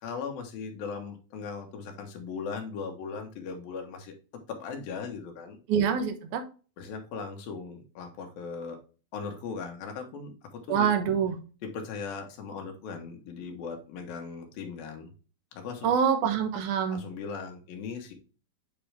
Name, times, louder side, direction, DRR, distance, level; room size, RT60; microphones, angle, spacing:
voice 1, 0.0-4.1 4.5-5.6 6.8-8.8 9.1-10.9 11.6-15.1 15.5-15.9 16.9-18.1, left 5 dB, 75° left, 3 dB, 3.1 m, -38 dB
voice 2, 5.7-6.4 10.7-11.4 15.8-17.0, right 7 dB, 70° right, 6 dB, 2.2 m, -25 dB
8.7 x 3.8 x 3.3 m, 0.35 s
omnidirectional pair, 4.3 m